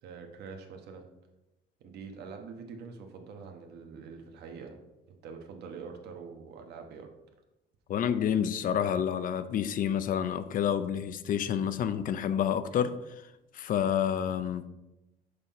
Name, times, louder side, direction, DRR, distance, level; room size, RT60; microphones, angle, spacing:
voice 1, 0.0-1.1 1.8-4.8 5.1-7.1, right 5 dB, 75° right, 1.2 m, -45 dB
voice 2, 7.9-12.9 13.5-14.6, left 9 dB, 55° left, 0.6 m, -29 dB
6.7 x 5.6 x 4.2 m
cardioid pair, 110°, 17 cm